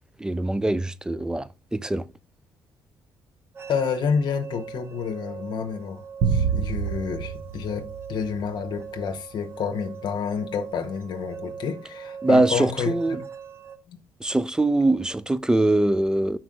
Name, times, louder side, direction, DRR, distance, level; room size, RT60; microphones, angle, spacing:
voice 1, 0.2-2.1 12.2-13.2 14.2-16.4, right 2 dB, 10° right, 0.3 m, -22 dB
sound 1, 3.5-13.8, right 6 dB, 30° right, 0.7 m, -41 dB
voice 2, 3.7-13.2 13.9-14.0, left 6 dB, 60° left, 0.9 m, -29 dB
sound 2, 6.2-8.7, right 6 dB, 75° right, 1.0 m, -27 dB
6.1 x 4.5 x 3.7 m
cardioid pair, 110°, 9 cm